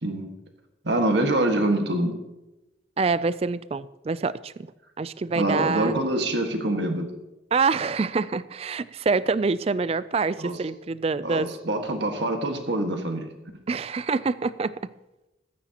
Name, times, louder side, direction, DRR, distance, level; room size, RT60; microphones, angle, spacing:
voice 1, 0.8-2.1 5.3-7.1 10.4-10.6 11.2-13.3, right 1 dB, 65° right, 4 dB, 1.7 m, -25 dB
voice 2, 3.0-4.7 5.0-6.0 7.5-11.5 13.7-14.7, right 4 dB, 30° right, 17 dB, 0.3 m, -26 dB
15.0 x 13.5 x 2.9 m, 1.0 s
head